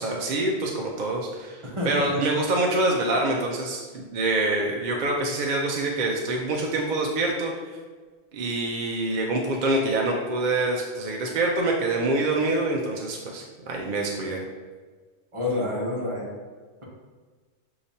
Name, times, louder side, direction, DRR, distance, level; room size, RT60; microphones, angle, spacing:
voice 1, 0.0-7.5 8.3-14.4, right 2 dB, 55° right, 0 dB, 0.6 m, -26 dB
voice 2, 1.6-2.1 14.2-14.3 15.3-16.2, left 2 dB, 30° right, -5 dB, 1.1 m, -28 dB
6.6 x 2.9 x 2.7 m, 1.4 s
omnidirectional pair, 1.2 m